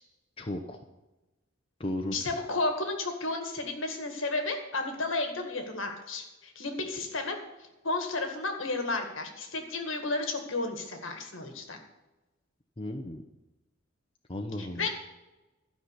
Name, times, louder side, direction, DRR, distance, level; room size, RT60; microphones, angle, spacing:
voice 1, 0.4-0.8 1.8-2.2 12.8-13.2 14.3-14.9, left 1 dB, 25° left, 3 dB, 0.7 m, -35 dB
voice 2, 2.1-7.4 7.8-11.8 14.6-14.9, left 2 dB, 65° left, 5 dB, 1.9 m, -32 dB
12.0 x 5.8 x 8.3 m, 1.0 s
head